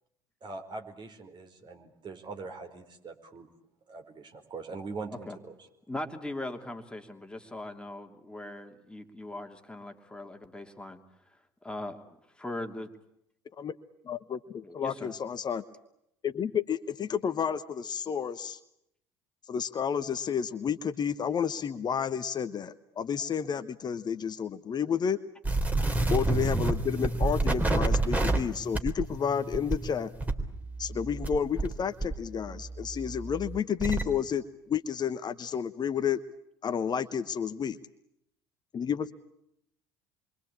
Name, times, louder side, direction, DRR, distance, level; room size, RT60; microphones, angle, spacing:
voice 1, 0.4-3.5 3.9-5.5, right 4 dB, 40° right, 5 dB, 4.8 m, -42 dB
voice 2, 5.9-11.0 11.6-12.0 12.4-12.9 14.6-15.1, left 1 dB, 10° left, 5 dB, 2.8 m, -39 dB
voice 3, 14.0-15.6 16.2-18.6 19.5-25.2 26.1-30.1 30.8-36.2 36.6-37.8 38.7-39.1, left 7 dB, 35° left, 11 dB, 1.1 m, -31 dB
sound 1, 25.4-31.7 32.0-34.0, right 2 dB, 15° right, 3.8 m, -29 dB
28.0 x 24.0 x 8.7 m, 0.78 s
figure-of-eight pair, 60°, 12 cm